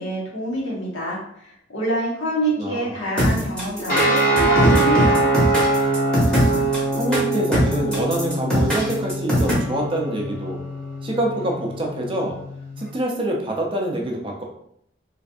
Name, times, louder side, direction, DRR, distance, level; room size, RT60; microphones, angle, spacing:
voice 1, 0.0-5.3, right 1 dB, 90° left, -5 dB, 1.2 m, -26 dB
voice 2, 2.6-3.0 7.0-10.6 11.0-12.4 12.8-14.4, right 1 dB, 30° right, 0 dB, 0.5 m, -25 dB
sound 1, 3.2-9.5, equal, 5° left, 0.9 m, -20 dB
sound 2, 3.9-12.8, right 2 dB, 50° left, 1.3 m, -23 dB
3.2 x 2.5 x 2.5 m, 0.71 s
head